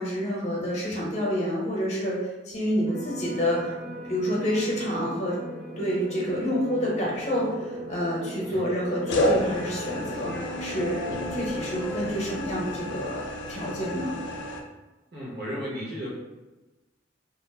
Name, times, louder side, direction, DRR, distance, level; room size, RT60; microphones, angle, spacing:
voice 1, 0.0-3.7 4.1-5.4 5.8-11.1 11.3-13.2 13.5-14.2, equal, 40° left, -4 dB, 0.7 m, -28 dB
sound 1, 2.9-12.1, equal, ahead, 0.6 m, -37 dB
sound 2, 7.1-7.8 9.1-14.6, left 1 dB, 70° left, 0.4 m, -31 dB
voice 2, 15.1-16.1, equal, 60° right, -6 dB, 1.0 m, -34 dB
2.5 x 2.0 x 3.1 m, 1.1 s
head